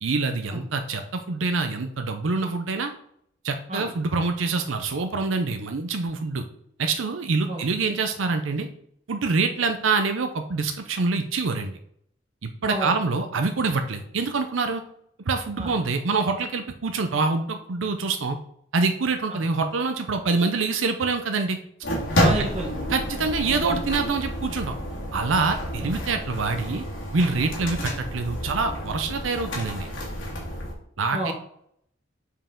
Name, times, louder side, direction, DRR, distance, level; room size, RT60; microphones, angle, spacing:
voice 1, 0.0-2.9 3.4-6.4 6.8-8.7 9.1-11.7 12.4-14.8 15.3-18.4 18.7-21.6 22.4-22.5 22.9-24.8 25.1-26.8 27.1-29.9 31.0-31.3, right 4 dB, 90° right, 6 dB, 0.6 m, -25 dB
sound 1, 21.8-30.7, equal, 80° left, 1.9 m, -29 dB
voice 2, 22.2-22.8 25.8-25.9 31.1-31.3, right 2 dB, 35° right, 1 dB, 1.3 m, -30 dB
5.3 x 4.8 x 3.7 m, 0.69 s
head